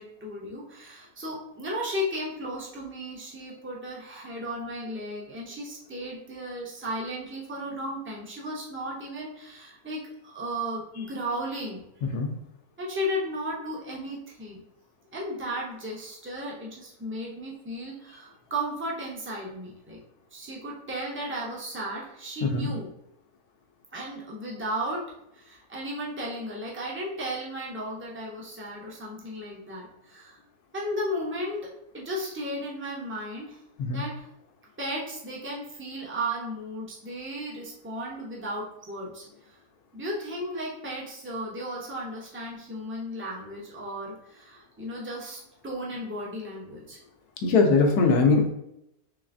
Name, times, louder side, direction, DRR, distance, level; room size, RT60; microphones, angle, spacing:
voice 1, 0.0-11.8 12.8-14.6 15.1-20.0 20.3-22.9 23.9-25.1 25.3-30.4 30.7-33.6 33.9-34.3 34.8-39.2 39.9-47.0, equal, 15° right, -3 dB, 0.4 m, -35 dB
voice 2, 47.4-48.5, left 4 dB, 80° left, 3 dB, 1.2 m, -21 dB
3.8 x 3.1 x 2.5 m, 0.80 s
omnidirectional pair, 1.6 m